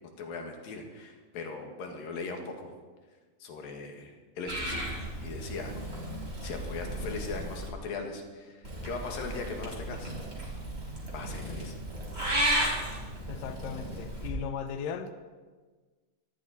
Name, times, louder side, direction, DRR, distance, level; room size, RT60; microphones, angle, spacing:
voice 1, 0.2-2.7 3.4-10.1 11.1-11.7, left 3 dB, 60° left, 3 dB, 3.3 m, -39 dB
Purr / Meow, 4.5-7.7 8.6-14.3, right 1 dB, 15° right, 4.4 m, -34 dB
voice 2, 13.3-15.1, left 7 dB, 85° left, 8 dB, 1.9 m, -37 dB
22.0 x 14.5 x 4.3 m, 1.4 s
omnidirectional pair, 5.2 m